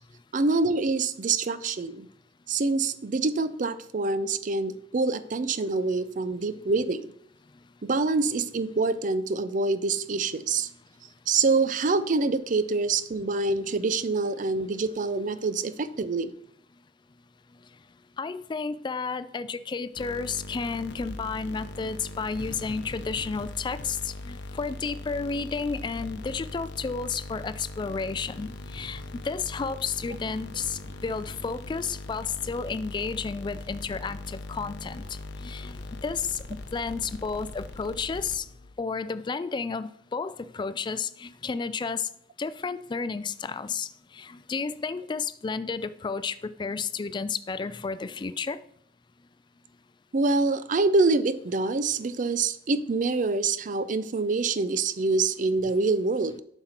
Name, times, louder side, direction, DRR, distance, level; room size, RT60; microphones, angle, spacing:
voice 1, 0.3-2.1 2.5-7.1 7.8-10.7 11.3-16.3 50.1-56.4, right 3 dB, 45° right, 14 dB, 0.5 m, -26 dB
voice 2, 18.2-35.0 35.4-36.2 36.5-38.4 38.8-42.0 42.4-43.9 44.2-48.6 56.2-56.4, left 5 dB, 25° left, 14 dB, 0.3 m, -32 dB
sound 1, 20.0-38.7, left 2 dB, 75° left, 0.8 m, -40 dB
7.7 x 5.9 x 4.3 m, 0.69 s
head